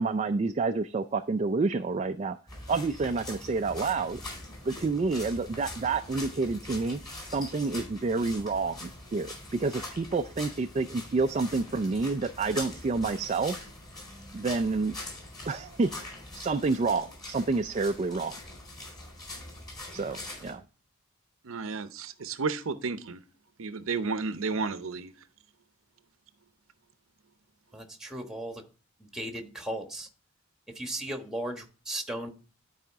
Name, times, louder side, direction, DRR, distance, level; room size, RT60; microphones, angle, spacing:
voice 1, 0.0-2.4 2.7-4.2 4.7-7.0 7.3-13.6 14.3-14.9 15.5-15.9 16.3-18.4 19.9-20.6, right 3 dB, 30° right, 0.3 m, -29 dB
sound 1, 2.5-20.5, left 1 dB, 20° left, 4.3 m, -43 dB
voice 2, 21.4-23.2 23.6-25.1, right 4 dB, 70° right, 0.7 m, -32 dB
voice 3, 27.7-28.6 29.1-30.1 30.7-32.3, right 1 dB, 5° right, 1.2 m, -36 dB
12.0 x 4.9 x 3.5 m
head